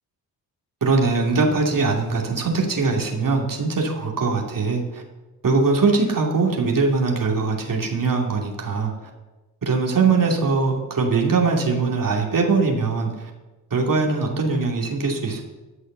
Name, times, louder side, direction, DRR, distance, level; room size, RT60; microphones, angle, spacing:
voice 1, 0.8-5.0 5.4-9.1 9.6-13.3 13.7-15.4, right 4 dB, 45° right, 0 dB, 2.7 m, -21 dB
12.0 x 6.3 x 6.7 m, 1.1 s
hypercardioid pair, 40°, 44 cm